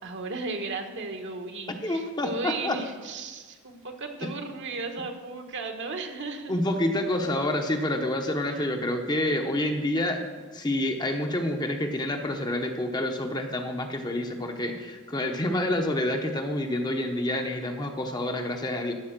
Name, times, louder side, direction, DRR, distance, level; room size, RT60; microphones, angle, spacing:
voice 1, 0.0-6.5 8.4-8.6, right 3 dB, 60° right, 5 dB, 1.3 m, -35 dB
voice 2, 1.8-2.8 6.5-10.2 10.5-18.9, left 1 dB, 20° left, 4 dB, 0.8 m, -28 dB
14.5 x 5.3 x 6.6 m, 1.4 s
head